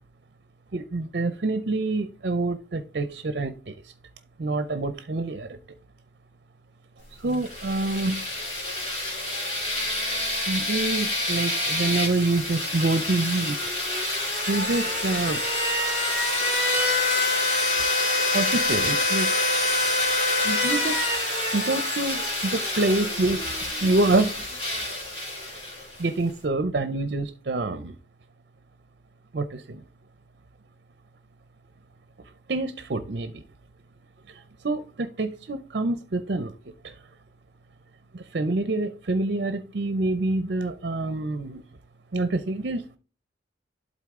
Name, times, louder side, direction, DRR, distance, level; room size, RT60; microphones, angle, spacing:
voice 1, 0.7-3.9 4.4-5.6 7.2-8.2 10.5-13.7 14.5-15.4 18.3-19.3 20.4-24.4 26.0-28.0 29.3-29.8 32.5-33.4 34.3-36.5 36.8-37.0 38.1-41.6 42.1-43.0, right 2 dB, 55° right, 0.6 m, -27 dB
sound 1, 7.3-26.0, left 2 dB, 30° left, 2.8 m, -26 dB
11.5 x 4.0 x 3.6 m
head